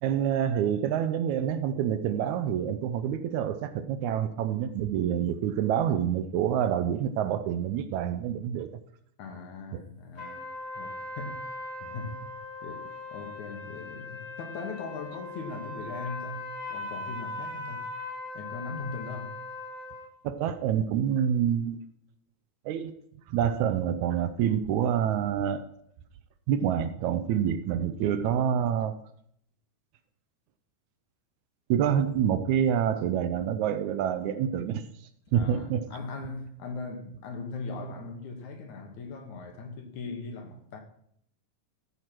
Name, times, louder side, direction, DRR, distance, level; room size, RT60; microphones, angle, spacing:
voice 1, 0.0-8.7 9.7-9.8 20.2-21.8 22.7-22.9 23.3-25.6 26.5-29.0 31.7-34.8 35.3-35.9, right 9 dB, 80° right, 1.9 m, -27 dB
voice 2, 9.2-10.5 10.7-11.4 11.8-12.2 12.6-17.8 18.3-19.3 35.3-40.8, left 3 dB, 70° left, 2.7 m, -39 dB
sound 1, 10.2-20.1, left 3 dB, 25° left, 2.0 m, -39 dB
14.0 x 4.7 x 5.9 m
omnidirectional pair, 3.6 m